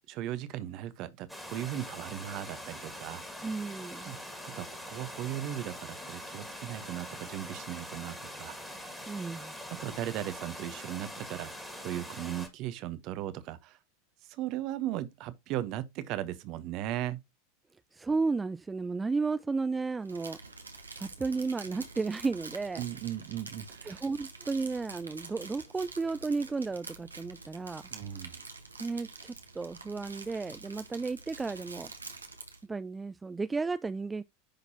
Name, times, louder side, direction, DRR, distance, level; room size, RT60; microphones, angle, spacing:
voice 1, 0.1-3.2 4.0-8.6 9.7-13.8 14.3-17.2 22.8-24.0 27.9-28.4, right 13 dB, 45° right, 0.9 m, -37 dB
sound 1, 1.3-12.5, equal, ahead, 2.0 m, -43 dB
voice 2, 3.4-4.2 9.1-9.5 17.9-20.4 21.0-22.8 23.9-27.8 28.8-31.9 32.7-34.2, right 4 dB, 15° right, 0.3 m, -33 dB
Crumpling crinkling, 20.0-32.6, right 3 dB, 85° right, 1.1 m, -47 dB
10.0 x 3.9 x 2.8 m
figure-of-eight pair, 85°, 0 cm